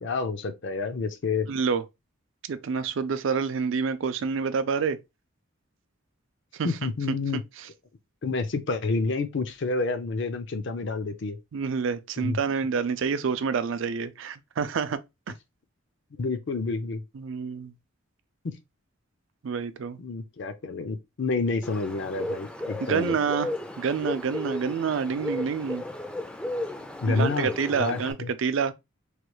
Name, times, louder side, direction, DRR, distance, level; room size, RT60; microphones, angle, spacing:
voice 1, 0.0-1.5 6.6-7.4 8.2-11.4 12.2-12.4 16.2-17.0 18.4-18.5 20.0-23.2 27.0-28.3, left 3 dB, 60° left, 0.5 m, -29 dB
voice 2, 1.5-1.8 2.5-5.0 6.5-6.7 11.5-15.0 17.1-17.7 19.4-20.0 22.9-25.8 27.1-28.7, right 5 dB, 65° right, 0.4 m, -28 dB
Bird, 21.6-28.1, left 1 dB, 5° left, 0.4 m, -34 dB
3.2 x 2.3 x 3.0 m
head